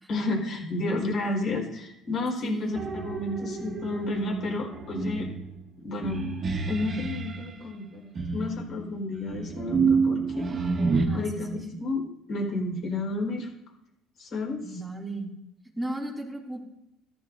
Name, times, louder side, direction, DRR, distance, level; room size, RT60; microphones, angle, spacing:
voice 1, 0.1-2.8 3.0-5.3 5.8-6.3 6.7-10.5 11.1-12.0 12.3-13.5 14.2-14.6, left 2 dB, 50° left, 0 dB, 4.3 m, -31 dB
voice 2, 2.4-2.8 11.1-11.8 14.6-15.3 15.8-16.6, right 1 dB, 5° right, -2 dB, 2.6 m, -35 dB
sound 1, 2.7-7.5 8.2-11.1, right 4 dB, 35° right, 1.9 m, -29 dB
14.0 x 10.5 x 2.6 m, 0.84 s
cardioid pair, 110°, 0 cm